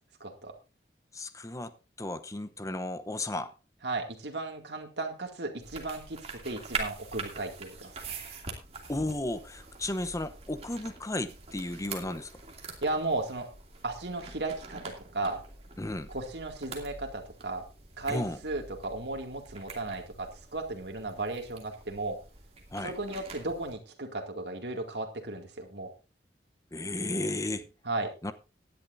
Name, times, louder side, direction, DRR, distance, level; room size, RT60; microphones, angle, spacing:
voice 1, 0.2-0.5 3.8-7.9 12.8-13.5 13.8-15.4 16.1-17.6 18.0-22.2 22.8-25.9 27.8-28.1, right 2 dB, 75° right, 2.3 m, -35 dB
voice 2, 1.1-3.5 8.9-12.3 15.8-16.1 18.1-18.4 22.7-22.9 26.7-27.7 28.2-28.3, left 2 dB, 20° left, 0.8 m, -34 dB
sound 1, 5.6-23.8, right 4 dB, 35° right, 2.6 m, -44 dB
18.0 x 10.5 x 2.6 m
head